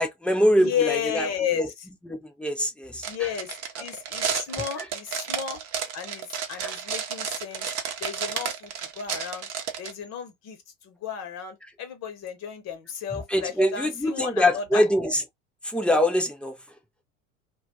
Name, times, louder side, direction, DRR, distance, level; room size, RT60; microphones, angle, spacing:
voice 1, 0.0-1.3 1.5-1.7 2.0-3.1 4.8-4.9 6.6-6.8 13.3-15.2 15.6-16.5, equal, 5° left, 0.4 m, -23 dB
voice 2, 0.6-1.7 3.1-5.6 5.9-7.7 8.0-8.7 9.0-9.5 9.8-10.6 10.8-14.8, left 8 dB, 40° left, 0.9 m, -33 dB
sound 1, 3.0-9.9, right 8 dB, 40° right, 0.7 m, -32 dB
2.3 x 2.2 x 2.6 m
hypercardioid pair, 80°, 39 cm